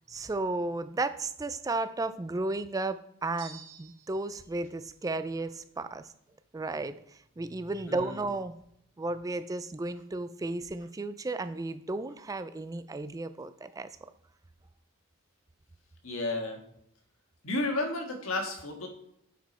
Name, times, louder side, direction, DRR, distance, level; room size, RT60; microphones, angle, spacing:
voice 1, 0.1-6.1 6.5-6.9 7.4-8.5 9.0-13.9, right 2 dB, 15° right, 12 dB, 0.3 m, -34 dB
sound 1, 3.4-4.3, right 7 dB, 65° right, 1.2 m, -49 dB
voice 2, 16.0-16.6 17.4-18.9, left 2 dB, 80° left, 3 dB, 1.6 m, -32 dB
9.0 x 5.0 x 4.2 m, 0.74 s
head